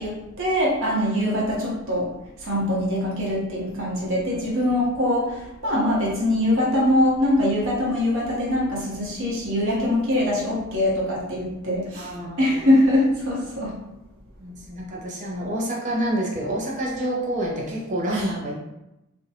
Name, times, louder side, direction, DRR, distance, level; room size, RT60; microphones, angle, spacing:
voice 1, 0.0-2.1 2.4-13.7 18.1-18.3, left 1 dB, 65° right, -4 dB, 0.9 m, -23 dB
voice 2, 12.0-12.6 14.4-18.6, right 1 dB, 35° right, -2 dB, 0.5 m, -28 dB
2.5 x 2.1 x 2.7 m, 0.92 s
head